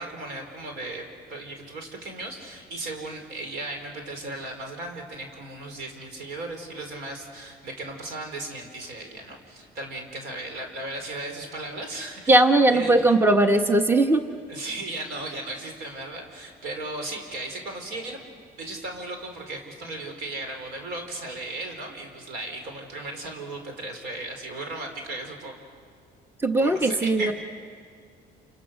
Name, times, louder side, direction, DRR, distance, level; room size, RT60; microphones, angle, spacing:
voice 1, 0.0-13.1 14.5-18.2 18.6-25.6 26.6-27.3, right 2 dB, 85° right, 4 dB, 4.6 m, -36 dB
voice 2, 12.3-14.2 26.4-27.3, right 2 dB, 15° right, 6 dB, 1.2 m, -19 dB
28.5 x 28.5 x 6.5 m, 2.2 s
cardioid pair, 110°, 17 cm